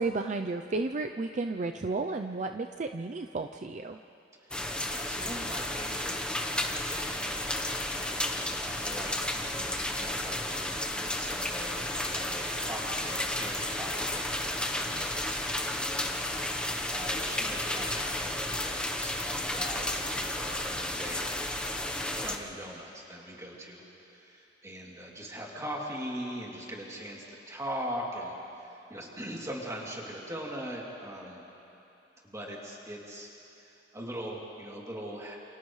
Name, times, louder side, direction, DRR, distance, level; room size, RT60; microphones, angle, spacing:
voice 1, 0.0-4.0, right 3 dB, 40° right, 6 dB, 0.5 m, -32 dB
voice 2, 4.4-16.6 16.9-21.3 22.2-31.4 32.2-33.3 33.6-35.4, equal, 15° right, -3 dB, 2.8 m, -41 dB
sound 1, 4.5-22.4, left 1 dB, 5° left, 0.9 m, -32 dB
29.0 x 28.5 x 3.2 m, 3.0 s
head